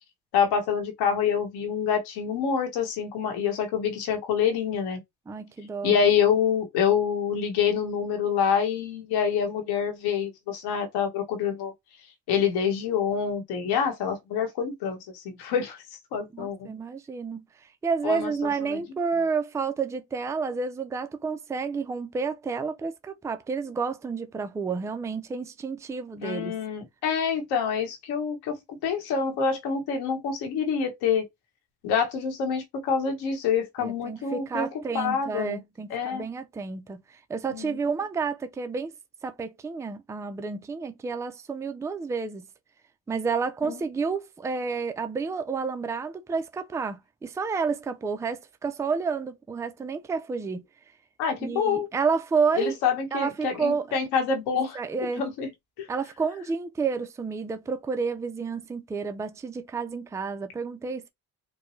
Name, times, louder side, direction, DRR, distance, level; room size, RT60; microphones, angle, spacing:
voice 1, 0.3-5.0 5.8-11.7 12.3-15.8 16.1-16.7 18.0-18.8 26.2-28.6 28.8-31.3 31.8-34.7 34.9-35.6 35.9-36.2 37.5-37.8 43.7-43.8 51.2-51.9 52.6-54.8 55.2-55.5 55.8-55.9, left 7 dB, 90° left, 1.4 m, -26 dB
voice 2, 5.3-6.0 16.3-17.4 17.8-26.5 33.8-38.9 39.2-42.5 43.1-50.6 51.4-52.8 53.1-54.0 54.7-55.2 55.9-61.1, right 5 dB, 10° right, 0.4 m, -30 dB
4.5 x 2.2 x 3.1 m
cardioid pair, 110°, 38 cm